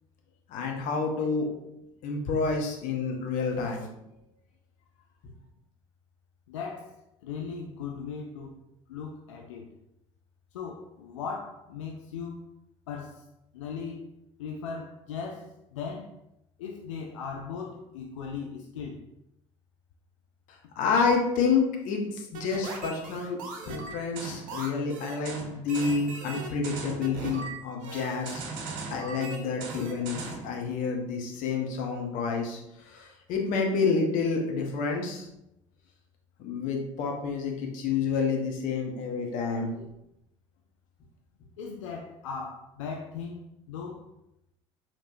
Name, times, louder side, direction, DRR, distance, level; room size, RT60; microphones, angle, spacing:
voice 1, 0.5-1.5 2.0-3.9 20.8-23.4 23.7-28.4 28.9-32.6 32.9-35.3 36.4-39.8, left 5 dB, 55° left, 1 dB, 0.8 m, -29 dB
voice 2, 6.5-8.6 8.9-9.7 10.5-12.5 12.9-13.2 13.5-14.1 14.4-16.1 16.6-19.1 41.6-44.1, left 5 dB, 75° left, 1 dB, 0.4 m, -38 dB
sound 1, 22.3-30.5, right 3 dB, 55° right, 0.7 m, -38 dB
4.4 x 3.0 x 2.5 m, 0.84 s
figure-of-eight pair, 60°, 16 cm